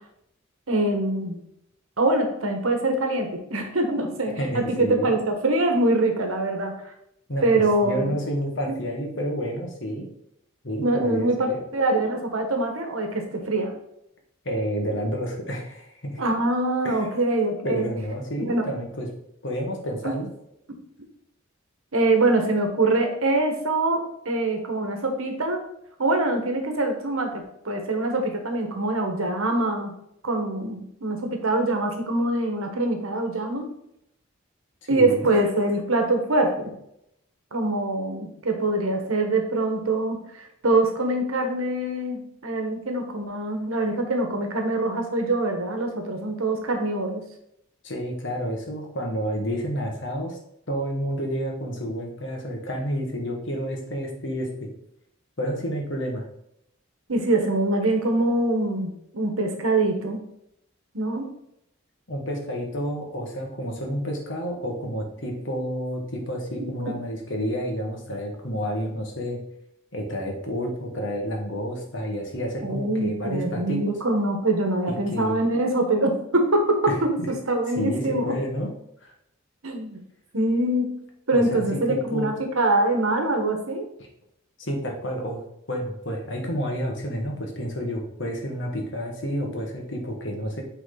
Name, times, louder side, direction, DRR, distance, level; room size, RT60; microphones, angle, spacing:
voice 1, 0.7-1.4 2.0-6.7 7.4-8.2 10.8-13.7 16.2-17.9 18.4-18.7 20.0-20.1 20.7-20.8 21.9-25.6 26.0-29.9 30.2-33.7 34.9-36.7 37.5-47.2 57.1-60.2 60.9-61.3 66.6-66.9 68.5-68.6 72.6-78.4 79.6-80.0 80.3-80.9 81.3-83.9, right 2 dB, 90° right, 4 dB, 1.4 m, -24 dB
voice 2, 4.4-5.1 7.3-7.4 7.8-10.1 10.6-11.6 14.4-16.2 16.8-17.1 17.6-19.1 19.4-20.3 34.9-35.3 47.8-50.4 50.7-54.7 55.4-56.3 62.1-69.4 69.9-74.0 74.9-75.4 76.9-77.3 77.7-78.7 79.0-79.1 81.3-81.8 82.1-82.3 84.6-85.4 85.7-90.6, equal, 60° left, 1 dB, 1.5 m, -30 dB
8.2 x 3.8 x 4.0 m, 0.76 s
head